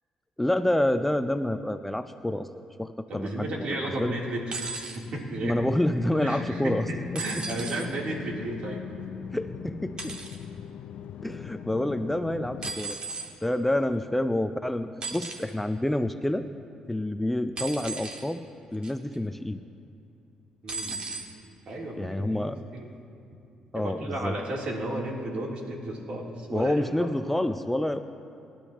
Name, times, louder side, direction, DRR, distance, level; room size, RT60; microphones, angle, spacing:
voice 1, 0.4-2.5 2.8-3.7 4.0-4.1 5.4-6.9 7.1-7.2 9.3-10.2 11.2-13.0 13.4-16.5 16.9-18.4 18.7-19.6 22.0-22.6 23.7-24.4 26.5-28.0, left 1 dB, 5° left, 9 dB, 0.6 m, -28 dB
voice 2, 3.1-5.6 6.2-8.8 20.6-21.0 21.7-22.9 23.7-27.1, right 1 dB, 60° right, -2 dB, 3.4 m, -34 dB
sound 1, 4.5-5.0 7.1-7.9 10.0-10.4 12.6-13.3 15.0-15.5 17.6-18.3 18.8-19.1 20.7-21.3 22.3-22.4, right 3 dB, 45° right, 1.8 m, -36 dB
sound 2, 5.3-12.8, left 8 dB, 70° left, 0.6 m, -40 dB
26.0 x 12.0 x 3.0 m, 2.8 s
cardioid pair, 75°, 2 cm